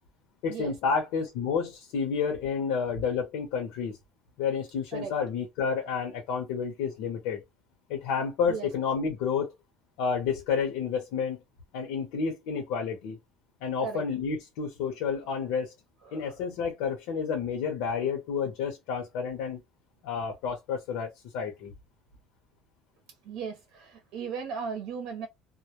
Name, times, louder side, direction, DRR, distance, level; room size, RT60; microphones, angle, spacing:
voice 1, 0.4-4.0 4.4-7.4 7.9-9.5 10.0-11.4 11.7-13.2 13.6-15.7 16.1-19.6 20.0-21.7, left 6 dB, 75° left, 0.7 m, -30 dB
voice 2, 16.1-16.4 23.2-25.3, right 6 dB, 65° right, 0.7 m, -36 dB
2.2 x 2.0 x 2.8 m
cardioid pair, 175°, 0 cm